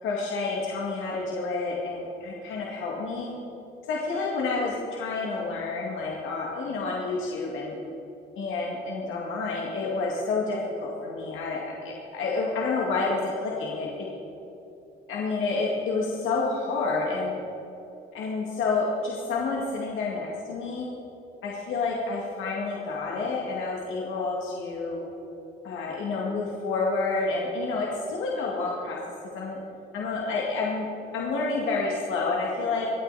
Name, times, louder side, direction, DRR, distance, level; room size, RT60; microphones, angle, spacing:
voice 1, 0.0-3.3 3.9-7.8 8.4-14.1 15.1-17.3 18.1-20.9 21.4-25.0 25.6-29.6 29.9-30.9 31.1-32.9, left 3 dB, 80° left, -3 dB, 2.1 m, -29 dB
25.0 x 8.7 x 4.1 m, 3.0 s
cardioid pair, 90°, 20 cm